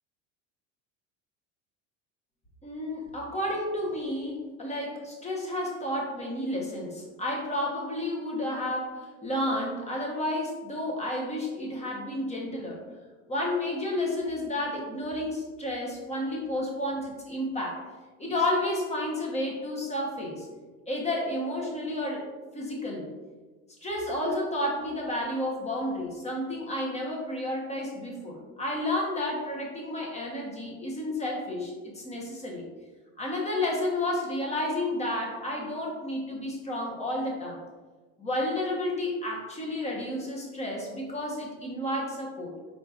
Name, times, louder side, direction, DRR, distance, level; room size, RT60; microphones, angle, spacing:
voice 1, 2.6-12.8 13.3-17.8 18.2-20.5 20.9-22.3 22.5-23.1 23.8-32.6 33.2-37.6 38.2-42.5, left 1 dB, 15° left, -2 dB, 1.1 m, -31 dB
4.4 x 3.8 x 2.5 m, 1.3 s
supercardioid pair, 105°, 41 cm